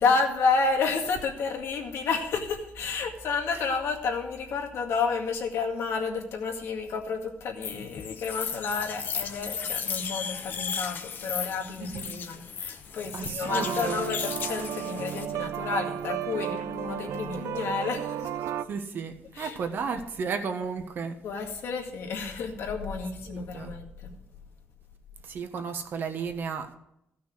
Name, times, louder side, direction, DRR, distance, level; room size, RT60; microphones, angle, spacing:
voice 1, 0.0-18.5 19.3-19.6 21.2-24.1, left 4 dB, 70° left, 2.0 m, -30 dB
sound 1, 7.6-15.2, left 6 dB, 45° left, 0.9 m, -35 dB
voice 2, 11.8-12.2 13.1-14.0 17.3-17.4 18.7-21.2 23.3-23.8 25.2-26.8, right 5 dB, 50° right, 1.3 m, -34 dB
sound 2, 13.4-18.7, right 10 dB, 75° right, 0.6 m, -33 dB
14.5 x 6.2 x 6.2 m
cardioid pair, 160°, 5 cm